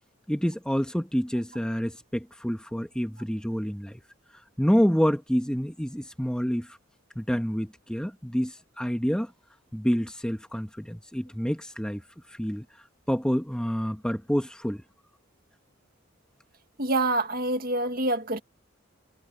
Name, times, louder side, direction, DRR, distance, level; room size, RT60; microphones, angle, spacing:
voice 1, 0.3-4.0 4.6-6.8 7.1-9.3 9.7-12.0 12.3-12.6 13.1-14.8, equal, 5° left, 1.3 m, -28 dB
voice 2, 16.8-18.4, right 2 dB, 50° right, 2.0 m, -26 dB
head